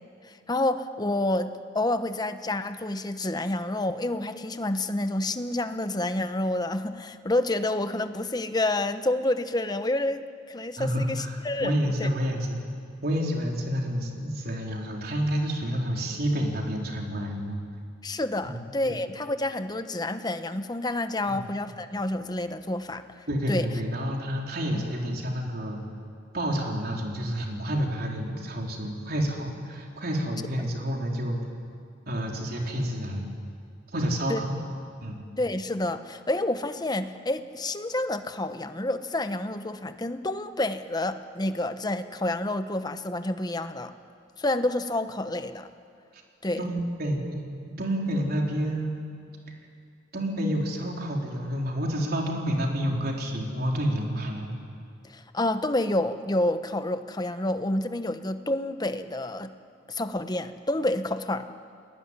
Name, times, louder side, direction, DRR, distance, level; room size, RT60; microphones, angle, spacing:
voice 1, 0.5-11.7 12.0-12.1 18.0-23.7 34.3-34.4 35.4-43.9 44.4-45.7 46.4-46.6 55.1-59.5 59.9-61.5, left 1 dB, 20° left, 9 dB, 1.0 m, -29 dB
voice 2, 10.8-12.6 13.0-17.6 18.4-19.0 21.3-21.5 23.3-25.8 26.3-31.4 32.1-33.3 33.9-34.6 35.0-35.2 46.6-47.4 47.8-49.0 50.1-54.5, equal, 55° right, 0 dB, 4.1 m, -29 dB
29.5 x 20.5 x 9.8 m, 2.3 s
head